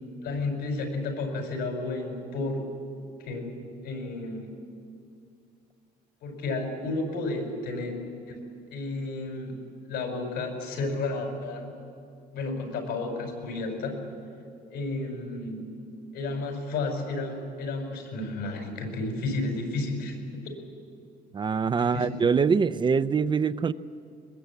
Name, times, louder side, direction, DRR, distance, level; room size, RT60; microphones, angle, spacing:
voice 1, 0.2-2.6 3.2-3.5 3.8-4.4 6.2-7.9 8.3-8.4 8.7-9.6 9.9-11.8 12.3-14.0 14.7-15.7 16.1-20.2 21.6-22.1, left 2 dB, 85° left, 3 dB, 5.1 m, -32 dB
voice 2, 21.3-23.7, right 5 dB, 30° right, 14 dB, 0.5 m, -24 dB
21.0 x 21.0 x 8.3 m, 2.4 s
cardioid pair, 110°, 17 cm